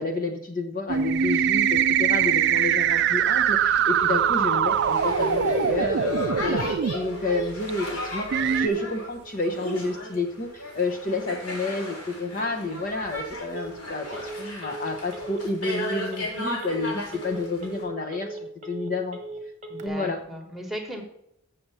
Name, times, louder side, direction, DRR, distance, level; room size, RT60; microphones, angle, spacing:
voice 1, 0.0-19.2 19.8-20.2, left 3 dB, 40° left, 5 dB, 0.9 m, -30 dB
sound 1, 0.9-6.9 7.7-7.8 8.3-8.7, right 8 dB, 50° right, 0.3 m, -22 dB
Telephone, 3.9-19.9, right 4 dB, 30° right, 1.2 m, -40 dB
Boat Water vehicle, 4.7-17.8, left 1 dB, 80° left, 3.8 m, -35 dB
voice 2, 19.7-21.0, equal, ahead, 1 dB, 1.3 m, -37 dB
7.6 x 6.8 x 5.5 m, 0.74 s
head